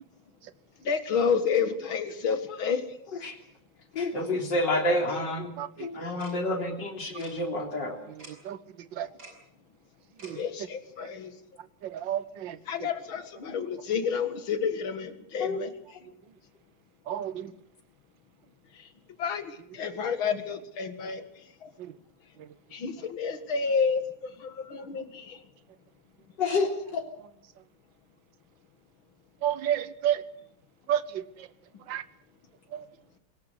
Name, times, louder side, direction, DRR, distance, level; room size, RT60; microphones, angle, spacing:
voice 1, 0.8-2.8 10.4-11.3 12.7-15.7 18.7-18.9 19.2-21.3 21.6-21.7 22.7-25.4, left 6 dB, 75° left, 9 dB, 2.6 m, -30 dB
voice 2, 3.9-5.5 5.8-8.0 15.4-15.6 26.4-27.0, left 2 dB, 55° left, 3 dB, 4.0 m, -28 dB
Tick-tock, 6.2-6.3 7.2-7.3 8.2-8.3 9.2-9.3 10.2-10.3, right 2 dB, 50° right, 6.0 m, -46 dB
voice 3, 11.9-12.5 17.1-17.5 29.4-30.2 30.9-31.0 31.9-32.0, right 11 dB, 65° right, 15 dB, 1.7 m, -28 dB
20.5 x 18.0 x 8.2 m, 0.70 s
omnidirectional pair, 2.3 m